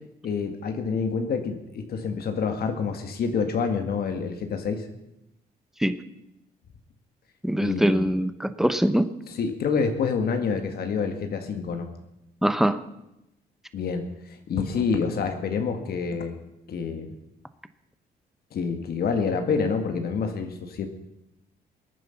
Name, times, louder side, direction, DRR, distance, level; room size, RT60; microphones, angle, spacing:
voice 1, 0.2-4.9 7.6-8.1 9.3-11.9 13.7-16.4 16.7-17.1 18.5-20.9, left 5 dB, 65° left, 6 dB, 1.8 m, -27 dB
voice 2, 7.4-9.1 12.4-12.8, right 1 dB, ahead, 11 dB, 1.0 m, -23 dB
20.5 x 9.5 x 5.9 m, 0.87 s
cardioid pair, 100°, 17 cm